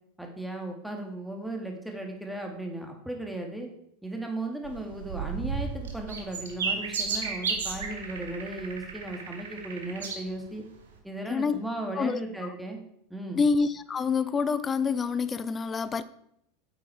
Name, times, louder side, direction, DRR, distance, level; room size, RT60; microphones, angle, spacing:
voice 1, 0.2-3.7 4.0-10.6 11.0-12.8 13.1-13.4, right 2 dB, ahead, 2.4 m, -36 dB
sound 1, 4.6-10.2 10.8-10.9, right 5 dB, 75° right, 1.8 m, -33 dB
voice 2, 13.3-16.0, left 5 dB, 25° left, 0.6 m, -27 dB
9.1 x 8.4 x 4.7 m
figure-of-eight pair, 85°, 0 cm